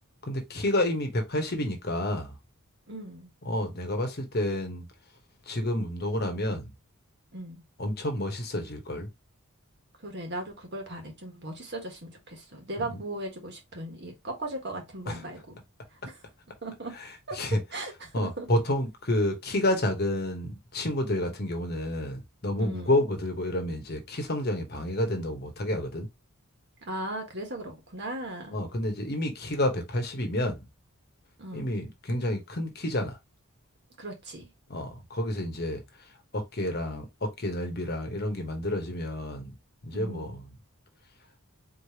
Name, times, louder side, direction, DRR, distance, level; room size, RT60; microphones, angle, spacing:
voice 1, 0.2-2.4 3.4-4.9 5.4-6.7 7.8-9.1 15.1-15.2 17.0-17.1 17.3-17.6 18.1-26.1 28.5-30.7 31.5-33.2 34.7-39.5 39.8-40.6, left 1 dB, 45° left, 1.1 m, -29 dB
voice 2, 2.9-3.3 7.3-7.6 10.0-15.6 15.9-16.2 16.6-17.0 17.3-17.4 17.7-18.5 22.6-23.0 26.9-28.6 31.4-31.8 34.0-34.5 39.9-40.4, right 1 dB, 50° right, 1.5 m, -38 dB
4.2 x 3.3 x 2.8 m
head